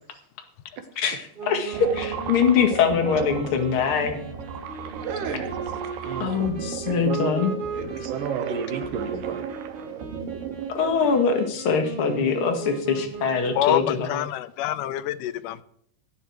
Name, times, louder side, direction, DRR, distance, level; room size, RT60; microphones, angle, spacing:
voice 1, 1.0-4.2 6.2-7.5 10.7-14.2, left 6 dB, 45° left, 5 dB, 2.3 m, -23 dB
Wind instrument woodwind instrument, 1.3-13.8, right 5 dB, 45° right, 2.6 m, -37 dB
sound 1, 1.7-11.2, right 8 dB, 85° right, 3.0 m, -35 dB
voice 2, 4.8-5.7 6.0-9.5, right 6 dB, 65° right, 8 dB, 2.7 m, -33 dB
voice 3, 13.5-15.6, left 12 dB, 80° left, 13 dB, 2.0 m, -26 dB
18.0 x 11.0 x 4.6 m, 0.67 s
omnidirectional pair, 4.4 m